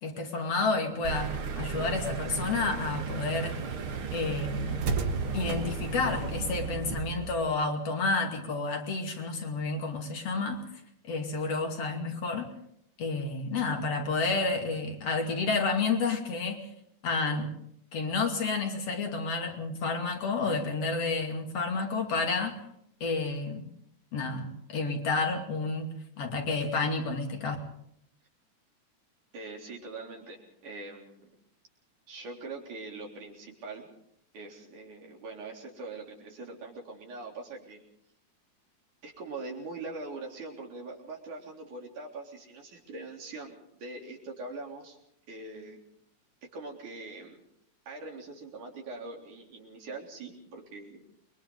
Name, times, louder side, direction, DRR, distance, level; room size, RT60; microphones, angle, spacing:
voice 1, 0.0-3.6 4.1-4.9 5.3-10.6 11.0-12.5 13.0-16.7 17.0-17.5 17.9-22.6 23.0-23.7 24.1-27.6, left 3 dB, 55° left, 3 dB, 3.6 m, -30 dB
sound 1, 1.0-7.5, right 5 dB, 50° right, 2.1 m, -33 dB
voice 2, 29.3-31.3 32.1-33.9 34.3-37.8 39.0-45.0 45.3-45.8 46.5-47.4 47.9-51.0, right 3 dB, 80° right, 0 dB, 5.2 m, -42 dB
29.5 x 23.0 x 4.0 m, 0.72 s
omnidirectional pair, 3.5 m